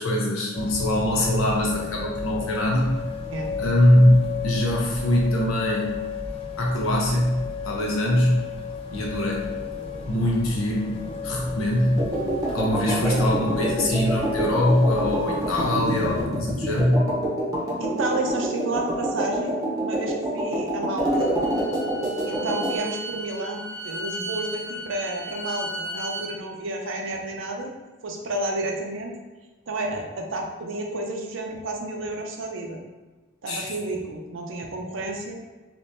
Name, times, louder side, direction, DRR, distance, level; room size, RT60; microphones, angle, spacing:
voice 1, 0.0-2.9 3.6-6.0 6.6-8.4 8.9-9.5 10.1-10.9 11.2-12.1 12.5-17.0 33.5-33.7, left 1 dB, 85° left, -2 dB, 0.8 m, -22 dB
sound 1, 0.5-16.3, left 6 dB, 25° left, 0.4 m, -33 dB
sound 2, 12.0-22.8, right 1 dB, 15° right, 0.7 m, -27 dB
voice 2, 12.9-13.2 17.8-19.5 19.8-21.3 22.3-27.7 28.0-29.1 29.7-32.8 33.4-35.4, right 2 dB, 65° right, 2 dB, 0.5 m, -31 dB
Bowed string instrument, 21.0-26.3, right 1 dB, 10° left, 0.9 m, -35 dB
3.5 x 3.0 x 2.6 m, 1.2 s
head